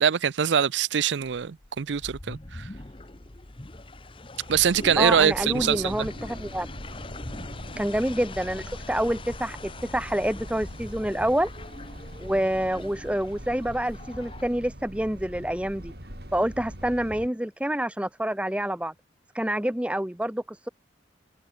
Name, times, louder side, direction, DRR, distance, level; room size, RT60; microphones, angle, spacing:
voice 1, 0.0-2.7 4.5-6.1, right 7 dB, 75° right, 0.5 m, -23 dB
sound 1, 1.5-14.4, left 2 dB, 30° left, 1.0 m, -42 dB
sound 2, 4.5-17.3, equal, 55° right, 5.7 m, -42 dB
voice 2, 5.0-6.7 7.8-11.5 12.2-15.9 16.3-18.9 19.3-20.7, right 1 dB, 5° right, 0.7 m, -27 dB
Bowed string instrument, 5.4-9.7, left 1 dB, 60° left, 6.3 m, -55 dB
head